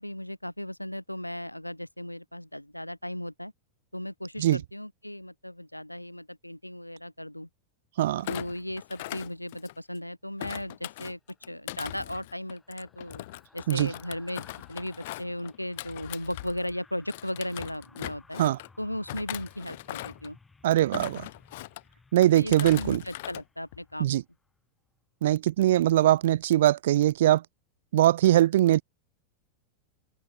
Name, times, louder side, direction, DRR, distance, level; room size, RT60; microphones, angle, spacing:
voice 1, 0.0-3.5 3.9-7.5 8.3-11.2 11.5-13.2 13.5-18.4 18.8-20.4 22.3-24.2, left 1 dB, 90° left, 1.0 m, -36 dB
voice 2, 8.0-8.3 13.7-13.9 18.4-18.6 20.6-21.3 22.1-23.0 24.0-24.2 25.2-27.4 27.9-28.8, right 13 dB, 55° right, 0.6 m, -22 dB
Thump thud, 8.2-10.0 10.4-16.8 17.1-18.7 19.1-20.3 20.8-21.8 22.2-23.4 23.7-24.1, left 17 dB, 55° left, 2.5 m, -40 dB
sound 1, 11.3-24.6 24.9-25.1, left 3 dB, 10° left, 4.9 m, -59 dB
figure-of-eight pair, 90°, 0 cm